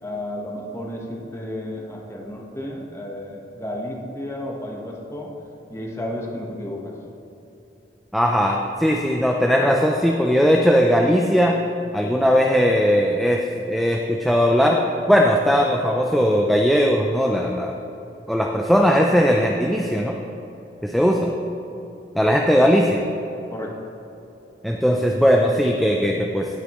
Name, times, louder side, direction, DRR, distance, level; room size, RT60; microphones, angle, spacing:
voice 1, 0.0-5.3 5.7-6.9 23.5-23.8, left 1 dB, 15° left, -1 dB, 1.2 m, -32 dB
voice 2, 8.1-11.6 11.9-13.4 13.7-14.8 15.1-17.7 18.3-20.2 20.8-21.3 22.1-23.0 24.6-26.5, equal, ahead, 0 dB, 0.4 m, -18 dB
17.5 x 6.8 x 3.1 m, 3.0 s
head